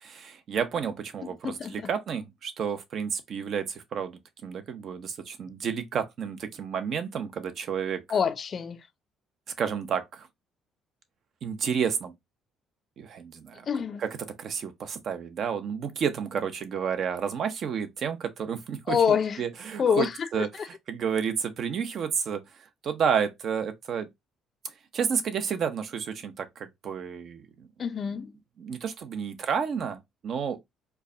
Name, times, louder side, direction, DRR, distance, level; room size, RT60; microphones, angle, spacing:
voice 1, 0.0-8.2 9.6-10.3 11.4-12.1 13.0-13.7 14.0-24.1 24.9-27.7 28.6-30.6, right 7 dB, 50° right, 0.7 m, -31 dB
voice 2, 8.1-8.8 13.7-14.0 18.9-19.4 19.8-20.1 27.8-28.3, left 7 dB, 40° left, 0.4 m, -25 dB
4.5 x 2.2 x 2.6 m
cardioid pair, 120°, 0 cm